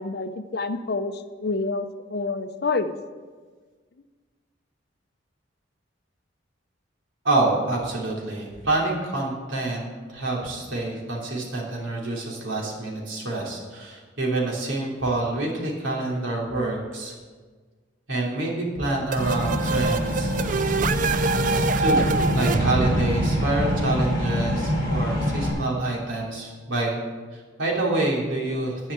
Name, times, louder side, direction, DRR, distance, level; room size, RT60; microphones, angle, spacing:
voice 1, 0.0-2.9, left 3 dB, 55° left, 9 dB, 0.6 m, -28 dB
voice 2, 7.2-17.1 18.1-20.3 21.8-27.0 27.3-28.9, right 2 dB, 75° right, -3 dB, 3.0 m, -27 dB
sound 1, 19.1-24.8, right 4 dB, 40° right, 0.4 m, -26 dB
sound 2, 19.2-25.5, left 1 dB, 20° left, 3.4 m, -25 dB
11.0 x 5.6 x 8.6 m, 1.5 s
head